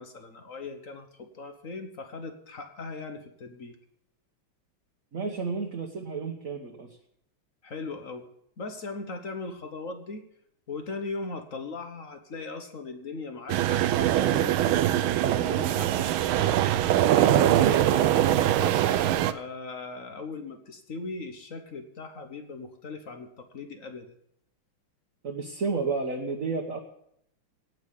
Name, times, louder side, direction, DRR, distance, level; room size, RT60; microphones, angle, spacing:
voice 1, 0.0-3.8 7.6-8.3 8.6-10.2 10.7-16.6 17.0-19.0 19.3-24.2, left 3 dB, 45° left, 7 dB, 1.4 m, -39 dB
voice 2, 5.1-6.9 25.2-26.8, right 4 dB, 45° right, 2 dB, 1.5 m, -31 dB
sound 1, 13.5-19.3, right 12 dB, 80° right, 1.5 m, -23 dB
17.5 x 5.9 x 8.4 m, 0.72 s
omnidirectional pair, 2.3 m